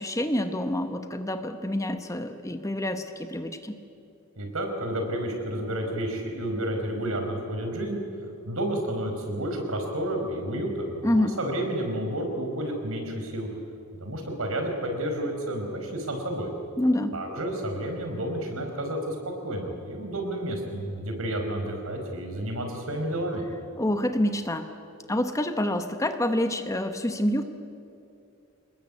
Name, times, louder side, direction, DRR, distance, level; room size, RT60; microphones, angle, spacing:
voice 1, 0.0-3.8 11.0-11.4 16.8-17.2 23.8-24.7 25.1-27.4, left 1 dB, 15° left, 8 dB, 1.0 m, -27 dB
voice 2, 4.4-8.0 8.5-13.5 14.0-16.5 17.1-19.2 19.4-23.4, right 1 dB, 70° right, 3 dB, 5.0 m, -30 dB
26.5 x 20.5 x 8.4 m, 2.5 s
head